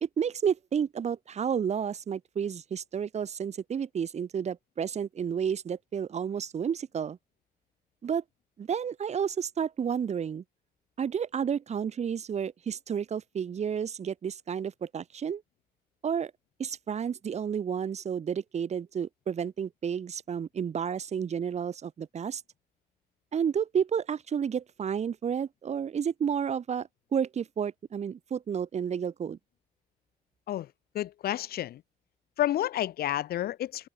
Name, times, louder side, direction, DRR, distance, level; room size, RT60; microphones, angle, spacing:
voice 1, 0.0-7.2 8.0-8.2 8.6-10.4 11.0-15.4 16.0-16.3 16.6-22.4 23.3-29.4, right 7 dB, 40° right, 1.1 m, -31 dB
voice 2, 30.9-31.8 32.4-33.9, left 12 dB, 70° left, 0.6 m, -30 dB
cardioid pair, 125°, 17 cm